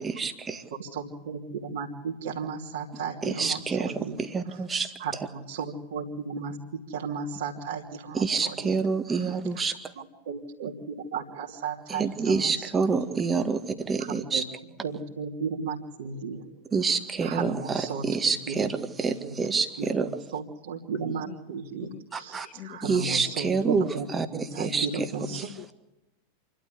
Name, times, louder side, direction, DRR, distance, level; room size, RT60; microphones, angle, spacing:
voice 1, 0.0-0.6 3.2-4.9 8.1-9.8 11.9-14.4 16.7-20.1 22.1-22.5 22.8-25.1 25.3-25.4, right 5 dB, 15° right, 8 dB, 1.9 m, -27 dB
voice 2, 0.8-4.2 4.5-4.6 5.0-6.6 6.9-8.8 9.1-9.3 10.0-12.9 14.2-14.4 14.8-16.4 17.2-18.0 18.5-18.7 19.0-19.1 19.8-24.1 24.3-25.5, right 5 dB, 60° right, -5 dB, 2.9 m, -35 dB
voice 3, 23.0-23.5 23.9-24.0 25.3-25.7, left 13 dB, 35° left, 11 dB, 1.4 m, -44 dB
28.0 x 13.0 x 8.4 m, 0.97 s
figure-of-eight pair, 90°, 0 cm